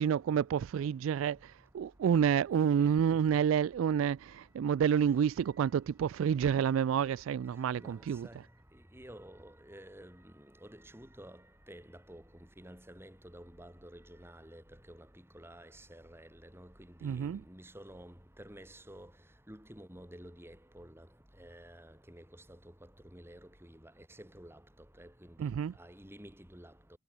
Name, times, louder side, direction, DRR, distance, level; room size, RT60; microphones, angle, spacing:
voice 1, 0.0-8.3 17.0-17.4 25.4-25.7, right 8 dB, 90° right, 0.3 m, -29 dB
voice 2, 7.8-8.4 8.9-11.4 11.7-12.2 12.6-15.1 15.3-19.1 19.5-21.1 21.4-22.6 23.1-24.6 25.0-25.5 25.8-26.7, right 1 dB, 10° right, 7.2 m, -51 dB
head